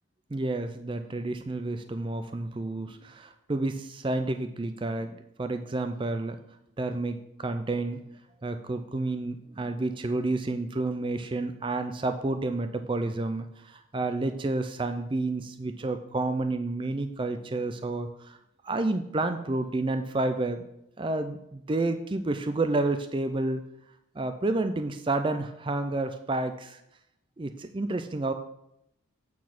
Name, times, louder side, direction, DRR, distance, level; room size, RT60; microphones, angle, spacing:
voice 1, 0.3-6.4 6.8-8.0 8.4-18.4 18.6-20.6 21.0-23.6 24.2-26.8 27.4-28.3, right 2 dB, 25° right, 8 dB, 0.4 m, -30 dB
8.3 x 4.5 x 5.9 m, 0.79 s
head